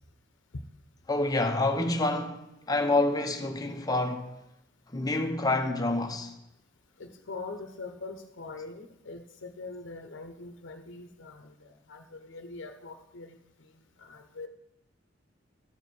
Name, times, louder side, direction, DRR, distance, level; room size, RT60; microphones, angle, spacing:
voice 1, 1.1-4.3 4.9-6.3, left 2 dB, 20° left, 0.8 m, -27 dB
voice 2, 7.0-13.7 14.0-14.5, left 3 dB, 65° left, 0.8 m, -43 dB
13.0 x 4.7 x 7.0 m
head